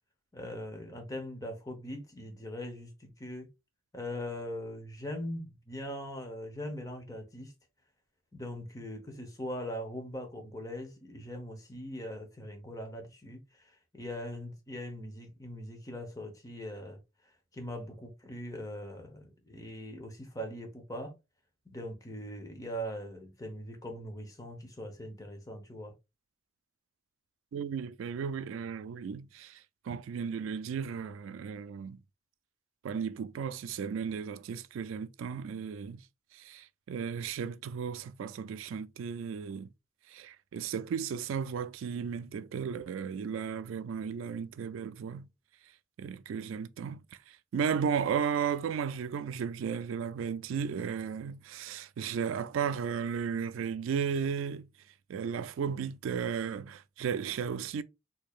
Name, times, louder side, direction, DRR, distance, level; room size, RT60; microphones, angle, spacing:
voice 1, 0.3-3.5 3.9-7.5 8.3-17.0 17.5-21.1 21.7-25.9, equal, 15° left, 0.9 m, -41 dB
voice 2, 27.5-32.0 32.8-36.0 36.3-39.7 40.1-45.3 46.0-54.7 55.1-57.8, right 7 dB, 80° right, 0.3 m, -35 dB
4.6 x 2.7 x 2.4 m
head